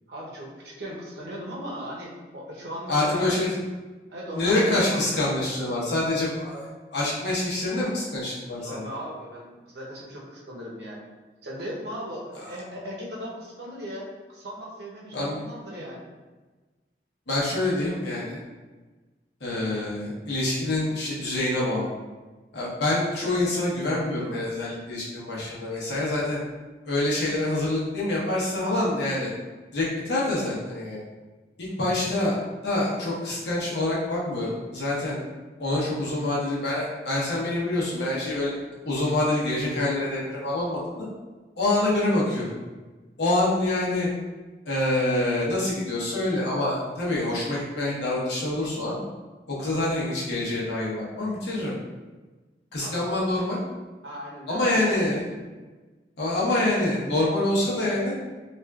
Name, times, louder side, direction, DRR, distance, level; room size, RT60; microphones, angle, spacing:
voice 1, 0.1-3.3 4.1-5.3 8.3-8.4 8.6-11.0 11.4-16.1 52.8-53.2 54.0-55.4, equal, 75° right, -3 dB, 0.7 m, -38 dB
voice 2, 2.9-3.5 4.3-8.8 12.3-12.5 15.1-15.4 17.3-18.4 19.4-21.9 22.5-26.4 26.8-29.3 29.7-31.0 31.6-32.4 32.6-35.2 35.6-38.5 38.8-41.1 41.6-42.4 43.2-44.1 44.7-49.0 49.5-51.7 52.7-53.6 54.5-55.3 56.2-58.1, left 1 dB, 75° left, -6 dB, 0.9 m, -26 dB
3.5 x 2.4 x 2.3 m, 1.3 s
head